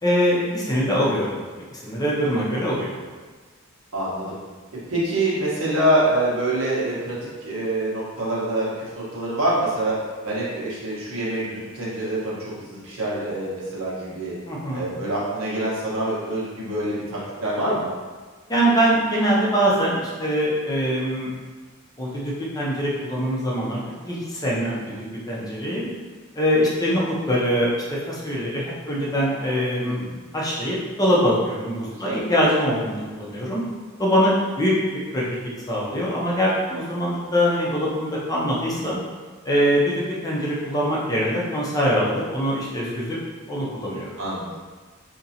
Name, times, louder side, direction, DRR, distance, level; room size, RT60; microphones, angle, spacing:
voice 1, 0.0-1.4 1.7-3.0 14.5-14.8 18.5-21.3 22.0-25.0 25.3-25.9 26.3-30.0 30.3-33.6 34.0-34.7 35.1-35.2 35.7-39.0 39.4-43.2 43.5-44.1, equal, 15° left, -5 dB, 0.6 m, -23 dB
voice 2, 3.9-4.4 4.9-7.1 7.4-10.0 10.2-14.3 14.7-17.9 24.8-24.9 29.7-30.2 31.9-32.2 38.7-38.8 44.2-44.5, right 1 dB, 85° right, -7 dB, 1.2 m, -25 dB
3.8 x 2.9 x 2.8 m, 1.4 s
head